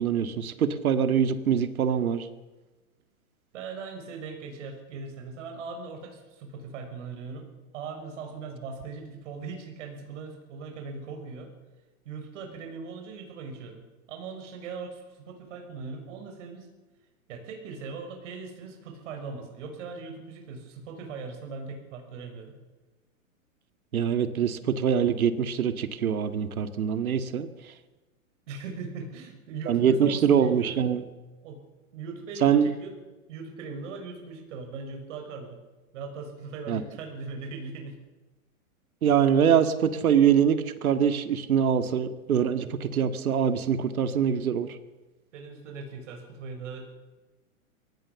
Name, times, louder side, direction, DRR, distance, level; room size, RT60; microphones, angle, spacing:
voice 1, 0.0-2.3 23.9-27.5 29.7-31.0 32.4-32.7 36.7-36.8 39.0-44.7, right 8 dB, 85° right, 10 dB, 2.0 m, -24 dB
voice 2, 3.5-7.5 7.7-11.5 12.0-13.8 14.1-16.7 17.3-22.5 28.5-30.8 31.4-31.6 31.9-32.9 33.3-35.6 35.9-38.0 45.3-47.0, right 4 dB, 60° right, 3 dB, 6.5 m, -39 dB
24.0 x 18.5 x 7.1 m, 1.2 s
hypercardioid pair, 140°, 42 cm